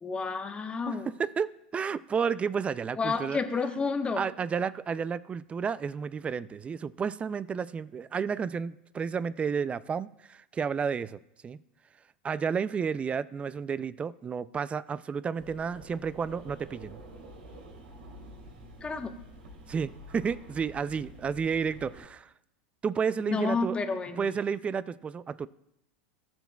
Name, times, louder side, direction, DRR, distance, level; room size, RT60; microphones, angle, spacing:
voice 1, 0.0-1.1 3.0-4.3 18.8-19.1 23.2-24.3, left 4 dB, 20° left, 6 dB, 1.1 m, -30 dB
voice 2, 0.9-3.4 4.2-11.6 12.2-17.0 19.7-22.3 22.8-23.7 24.2-25.5, right 6 dB, 20° right, 18 dB, 0.4 m, -31 dB
sound 1, 15.4-22.1, equal, 85° right, 2.8 m, -48 dB
18.5 x 7.0 x 2.3 m, 0.83 s
hypercardioid pair, 105°, 5 cm